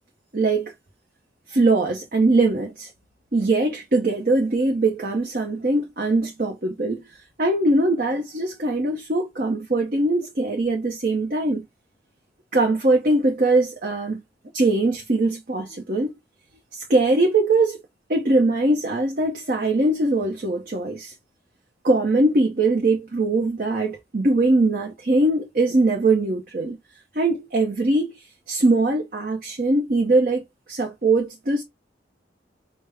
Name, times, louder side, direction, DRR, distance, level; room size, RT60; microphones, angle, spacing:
voice 1, 0.3-0.7 1.5-2.9 3.3-7.0 7.4-11.7 12.5-14.2 14.5-16.1 16.7-17.8 18.1-21.1 21.8-26.8 27.1-31.6, right 2 dB, 50° right, 0.8 m, -21 dB
5.1 x 2.1 x 3.4 m
head